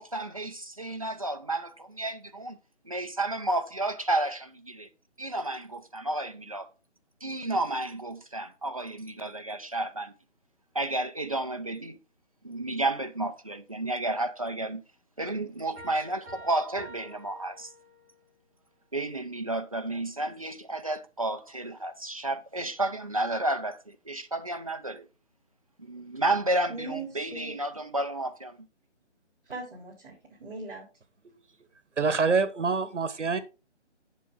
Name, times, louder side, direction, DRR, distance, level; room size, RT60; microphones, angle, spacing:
voice 1, 0.0-2.6 2.9-4.9 5.2-6.7 7.2-10.1 10.7-12.0 12.4-14.8 15.2-17.7 18.9-25.1 25.8-28.7, right 2 dB, 30° right, 0.5 m, -31 dB
Piano, 15.8-18.2, right 1 dB, 10° right, 3.4 m, -48 dB
voice 2, 26.7-27.6 29.5-30.9, right 3 dB, 50° right, 3.7 m, -40 dB
voice 3, 32.0-33.4, right 4 dB, 80° right, 1.3 m, -26 dB
7.4 x 7.2 x 3.7 m
figure-of-eight pair, 165°, 36 cm